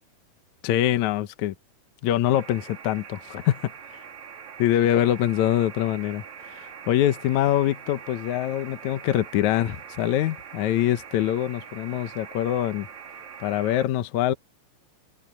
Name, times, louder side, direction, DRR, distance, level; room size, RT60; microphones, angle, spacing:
voice 1, 0.6-1.5 2.0-3.7 4.6-12.9 13.4-14.3, left 12 dB, 70° left, 2.2 m, -24 dB
sound 1, 2.3-13.8, right 7 dB, 60° right, 3.5 m, -43 dB
omnidirectional pair, 3.8 m